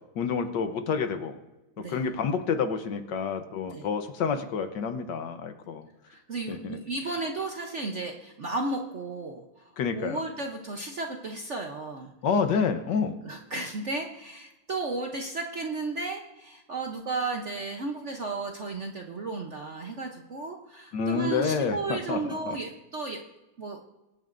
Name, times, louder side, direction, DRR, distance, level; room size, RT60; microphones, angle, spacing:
voice 1, 0.2-1.4 1.9-5.9 6.5-6.8 9.8-10.2 12.2-13.2 20.9-22.6, left 5 dB, 65° left, 8 dB, 1.4 m, -28 dB
voice 2, 6.1-12.1 13.2-23.2 23.6-23.8, right 3 dB, 50° right, 2 dB, 0.9 m, -34 dB
23.0 x 9.0 x 2.6 m, 1.0 s
omnidirectional pair, 2.2 m